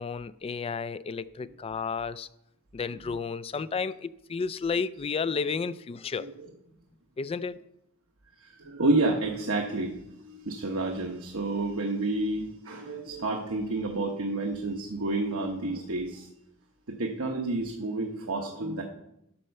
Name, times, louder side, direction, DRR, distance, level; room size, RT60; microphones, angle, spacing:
voice 1, 0.0-2.3 2.7-6.3 7.2-7.6, left 5 dB, 25° left, 0.3 m, -32 dB
voice 2, 8.4-16.3 17.0-18.8, right 2 dB, 80° right, 1.1 m, -30 dB
11.5 x 4.4 x 6.6 m
head